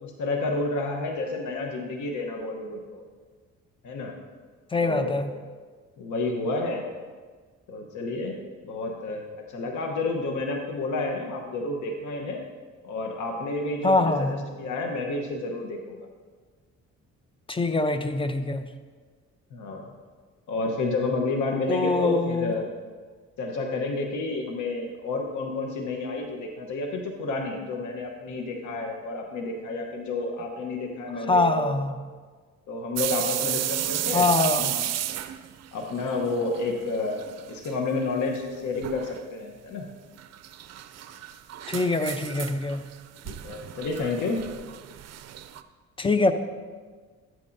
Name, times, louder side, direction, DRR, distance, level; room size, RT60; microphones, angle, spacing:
voice 1, 0.0-3.0 3.8-4.2 4.8-5.2 6.0-6.9 7.7-8.4 8.6-9.2 9.5-12.4 12.8-16.1 19.5-19.9 20.5-22.7 23.4-31.9 32.7-34.3 34.6-34.9 35.7-37.2 37.5-39.8 43.2-44.4, left 3 dB, 75° left, 2 dB, 1.1 m, -30 dB
voice 2, 4.7-5.3 13.8-14.4 17.5-18.6 21.7-22.5 31.3-31.9 34.1-34.6 41.7-42.8 46.0-46.3, left 2 dB, 15° left, 9 dB, 0.7 m, -24 dB
sound 1, 33.0-36.8 37.0-37.7 38.0-38.1 38.8-39.2 40.2-45.6, right 12 dB, 60° right, 0.5 m, -33 dB
12.5 x 8.7 x 2.7 m, 1.5 s
cardioid pair, 90°, 30 cm